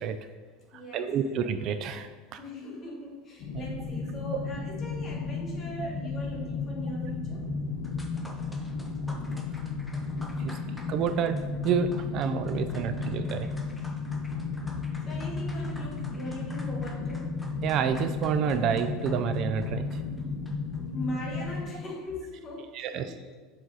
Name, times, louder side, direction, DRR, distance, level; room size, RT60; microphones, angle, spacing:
voice 1, 0.3-1.3 2.3-7.5 10.7-10.9 12.7-12.8 13.1-14.0 15.0-17.4 20.9-23.4, left 1 dB, 25° left, -2 dB, 1.7 m, -41 dB
voice 2, 0.9-2.1 3.5-3.6 5.8-5.9 10.4-10.6 10.9-13.5 17.6-19.8 22.7-23.1, right 7 dB, 45° right, 9 dB, 0.3 m, -28 dB
sound 1, 3.4-21.6, left 4 dB, 60° left, 1.3 m, -34 dB
sound 2, 7.8-20.8, left 1 dB, 5° left, 0.7 m, -51 dB
7.6 x 3.9 x 4.0 m, 1.4 s
supercardioid pair, 145°, 0 cm